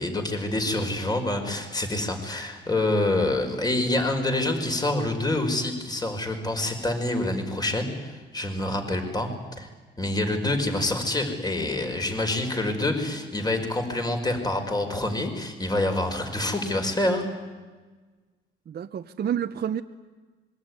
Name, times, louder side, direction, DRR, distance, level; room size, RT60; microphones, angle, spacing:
voice 1, 0.0-9.3 9.6-9.7 10.0-17.3, left 2 dB, 20° left, 5 dB, 5.4 m, -26 dB
voice 2, 18.7-19.8, right 9 dB, 55° right, 5 dB, 1.0 m, -29 dB
26.0 x 22.0 x 9.8 m, 1.3 s
cardioid pair, 90°, 20 cm